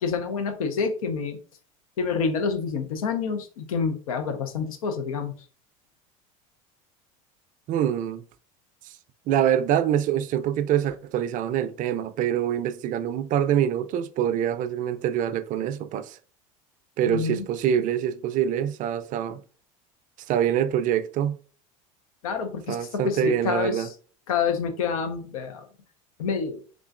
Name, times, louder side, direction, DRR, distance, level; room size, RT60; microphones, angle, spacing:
voice 1, 0.0-1.4 2.0-5.3 17.1-17.4 22.2-23.9 24.3-25.6 26.2-26.6, left 5 dB, 85° left, 0.7 m, -28 dB
voice 2, 7.7-8.2 9.3-16.2 17.0-19.4 20.3-21.4 22.7-23.9, right 10 dB, 50° right, 0.4 m, -25 dB
3.7 x 3.5 x 2.5 m
hypercardioid pair, 85°, 17 cm